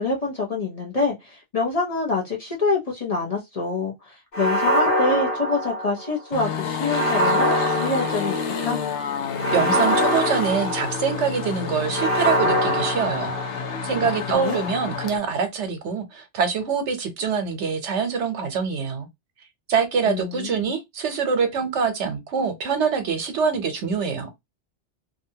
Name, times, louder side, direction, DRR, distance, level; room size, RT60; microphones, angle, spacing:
voice 1, 0.0-8.8 14.0-14.6 20.1-20.5, left 3 dB, 40° left, 0.7 m, -26 dB
sound 1, 4.3-6.2 6.9-8.7 9.4-11.3 11.9-13.8, equal, 55° left, 1.0 m, -24 dB
sound 2, 6.3-15.2, left 6 dB, 85° left, 0.9 m, -29 dB
voice 2, 9.5-13.3 13.8-19.1 19.7-24.3, right 6 dB, 80° right, 1.0 m, -24 dB
2.7 x 2.2 x 2.7 m
omnidirectional pair, 1.2 m